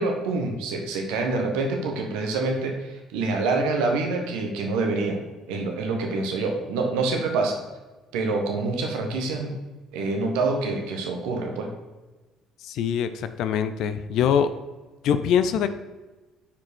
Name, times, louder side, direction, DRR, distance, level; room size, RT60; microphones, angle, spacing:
voice 1, 0.0-5.2 5.5-7.6 8.1-9.5 9.9-11.7, right 3 dB, 70° right, 3 dB, 1.1 m, -26 dB
voice 2, 12.6-14.5 15.0-15.7, left 8 dB, 60° left, 11 dB, 0.4 m, -23 dB
7.2 x 4.9 x 4.3 m, 1.2 s
figure-of-eight pair, 55°, 0 cm